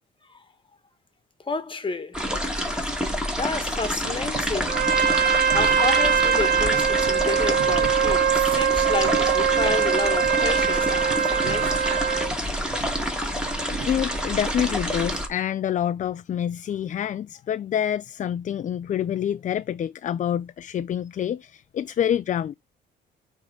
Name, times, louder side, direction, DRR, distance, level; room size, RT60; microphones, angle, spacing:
voice 1, 1.4-2.2 3.4-4.8 5.5-11.9, left 4 dB, 25° left, 1.4 m, -30 dB
sound 1, 2.1-15.3, equal, 5° right, 2.2 m, -28 dB
sound 2, 4.0-13.9, right 7 dB, 75° right, 1.5 m, -41 dB
Trumpet, 4.7-12.3, right 7 dB, 50° right, 0.9 m, -22 dB
voice 2, 13.9-22.5, left 10 dB, 40° left, 0.4 m, -27 dB
8.9 x 3.6 x 3.7 m
cardioid pair, 90°, 20 cm